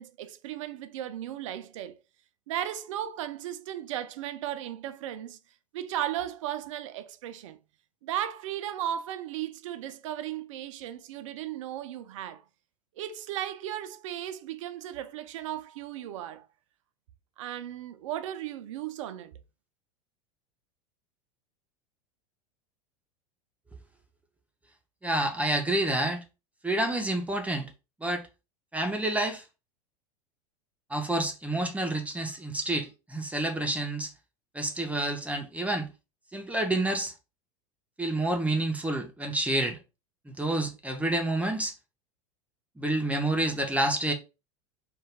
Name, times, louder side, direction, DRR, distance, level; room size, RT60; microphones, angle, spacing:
voice 1, 0.0-2.0 2.5-5.4 5.7-7.6 8.0-12.4 13.0-16.5 17.4-19.3, right 11 dB, 65° right, 0.4 m, -36 dB
voice 2, 25.0-26.2 26.6-27.7 28.0-28.2 28.7-29.4 30.9-34.1 34.5-35.9 36.3-37.1 38.0-39.8 40.3-41.7 42.8-44.1, right 1 dB, 10° right, 0.5 m, -28 dB
2.3 x 2.2 x 3.4 m
figure-of-eight pair, 85°, 18 cm